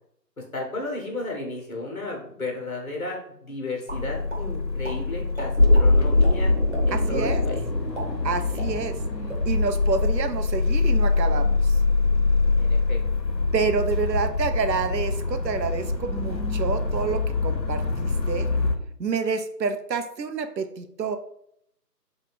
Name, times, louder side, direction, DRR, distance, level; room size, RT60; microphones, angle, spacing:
voice 1, 0.5-6.5 6.8-7.6 8.5-8.7 12.6-13.0, left 2 dB, 55° left, 0 dB, 1.2 m, -33 dB
sound 1, 3.9-18.7, left 3 dB, 90° left, 0.8 m, -25 dB
sound 2, 3.9-4.4 4.8-5.0 5.4-5.9 6.2-6.3 6.7-6.8 7.3-7.4 7.8-9.0 9.3-9.4 9.8-10.1, right 1 dB, 45° right, 1.0 m, -36 dB
sound 3, 5.6-11.5 11.9-12.0, left 2 dB, 20° left, 1.4 m, -23 dB
voice 2, 6.9-7.4 8.2-8.9 9.5-11.8 13.5-18.5 19.0-21.2, right 5 dB, 80° right, 9 dB, 0.6 m, -28 dB
3.8 x 2.3 x 4.0 m, 0.72 s
figure-of-eight pair, 165°, 50 cm